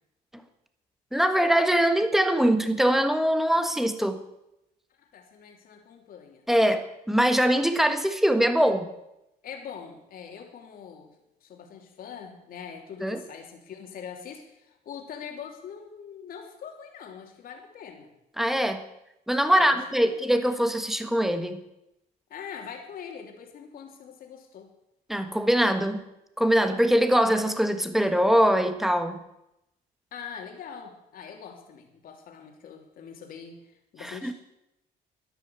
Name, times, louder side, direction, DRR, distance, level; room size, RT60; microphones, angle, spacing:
voice 1, 1.1-4.2 6.5-8.9 13.0-13.2 18.4-18.8 19.3-21.6 25.1-26.0 26.4-29.2 34.0-34.3, equal, ahead, 8 dB, 1.5 m, -23 dB
voice 2, 5.0-6.4 9.4-11.1 11.4-18.1 19.5-20.4 22.3-24.7 30.1-34.3, left 7 dB, 60° left, 2 dB, 3.2 m, -43 dB
13.5 x 10.5 x 8.2 m, 0.87 s
cardioid pair, 110°, 17 cm